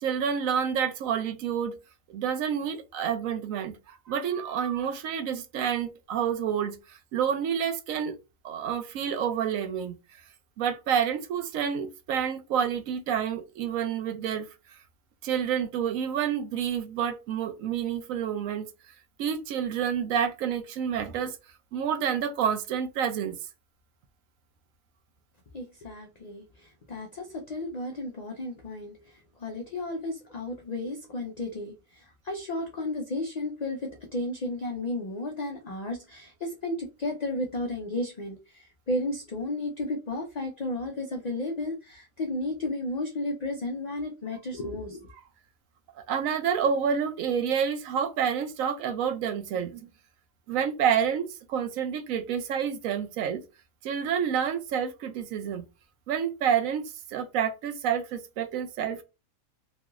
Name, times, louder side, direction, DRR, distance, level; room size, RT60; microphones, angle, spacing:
voice 1, 0.0-1.8 2.1-8.1 8.4-10.0 10.6-14.5 15.2-18.7 19.2-21.4 21.7-23.4 46.1-49.9 50.5-53.4 53.8-55.7 56.1-59.0, right 8 dB, 80° right, 1.0 m, -28 dB
voice 2, 25.5-45.1, left 2 dB, 45° left, 0.5 m, -33 dB
3.1 x 2.9 x 2.3 m
omnidirectional pair, 1.4 m